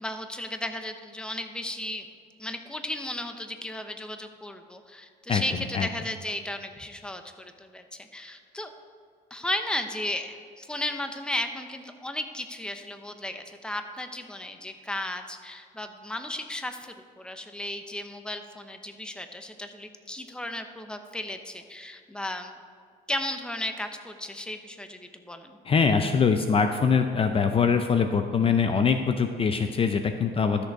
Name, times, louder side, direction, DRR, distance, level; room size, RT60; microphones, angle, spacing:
voice 1, 0.0-2.1 2.4-8.7 9.3-22.5 23.1-25.6, left 1 dB, 5° left, 7 dB, 0.8 m, -35 dB
voice 2, 25.6-30.6, left 5 dB, 35° left, 7 dB, 0.6 m, -23 dB
13.0 x 6.7 x 4.7 m, 2.3 s
cardioid pair, 110°, 17 cm